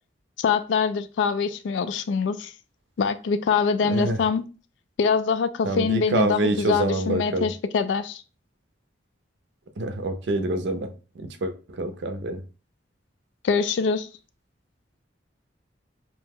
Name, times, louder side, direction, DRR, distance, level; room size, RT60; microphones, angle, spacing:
voice 1, 0.4-2.5 3.0-4.5 5.0-8.2 13.4-14.1, left 5 dB, 75° left, 0.3 m, -24 dB
voice 2, 3.8-4.2 5.6-7.5 9.8-12.4, right 2 dB, 70° right, 0.5 m, -27 dB
2.7 x 2.0 x 3.5 m
head